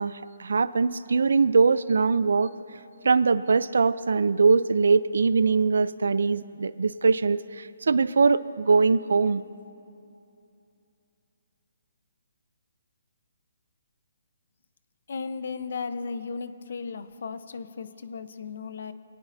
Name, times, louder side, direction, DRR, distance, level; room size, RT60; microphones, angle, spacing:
voice 1, 0.0-2.5 3.0-9.4, right 4 dB, 80° right, 17 dB, 0.4 m, -22 dB
voice 2, 15.1-18.9, left 5 dB, 65° left, 12 dB, 0.8 m, -35 dB
23.5 x 18.0 x 2.7 m, 2.7 s
hypercardioid pair, 160°, 0 cm